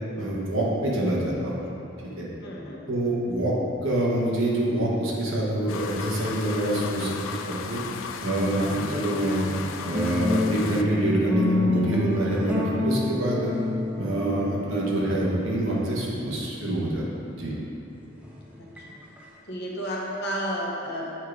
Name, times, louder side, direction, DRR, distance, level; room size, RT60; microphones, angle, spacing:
voice 1, 0.2-1.5 2.2-2.3 2.9-3.5 3.8-7.8 8.2-9.5 9.8-13.5 14.0-17.0 17.3-17.5, right 1 dB, 75° right, -4 dB, 1.3 m, -26 dB
voice 2, 2.4-3.2 8.6-8.8 18.6-19.0 19.5-21.2, equal, 50° left, -3 dB, 1.0 m, -33 dB
sound 1, 5.7-10.8, left 6 dB, 75° left, 0.3 m, -35 dB
sound 2, 8.4-17.3 18.2-19.2, left 2 dB, 5° right, 0.7 m, -29 dB
7.3 x 3.6 x 4.8 m, 2.9 s
head